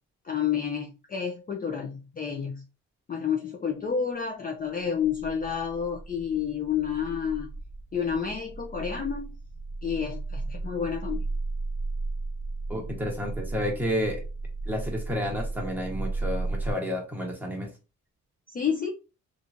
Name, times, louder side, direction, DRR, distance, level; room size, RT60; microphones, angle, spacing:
voice 1, 0.2-2.6 3.1-7.5 7.9-9.3 9.8-11.2 18.5-18.9, left 7 dB, 30° left, 1 dB, 0.5 m, -30 dB
sound 1, 5.0-16.7, right 3 dB, 55° left, 1.3 m, -35 dB
voice 2, 12.7-14.2 14.7-17.7, equal, 5° right, -1 dB, 1.1 m, -30 dB
2.9 x 2.5 x 2.5 m, 0.31 s
cardioid pair, 90°, 30 cm